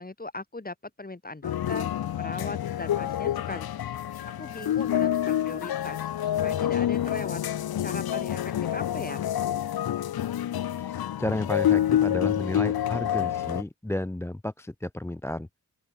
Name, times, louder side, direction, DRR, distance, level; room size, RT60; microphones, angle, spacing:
voice 1, 0.0-1.9 2.2-3.9 4.4-9.3, left 2 dB, 25° left, 2.5 m, -39 dB
sound 1, 1.4-13.6, left 11 dB, 80° left, 0.5 m, -27 dB
voice 2, 10.8-15.5, left 1 dB, 5° left, 0.4 m, -32 dB
open air
wide cardioid pair, 100°, 36 cm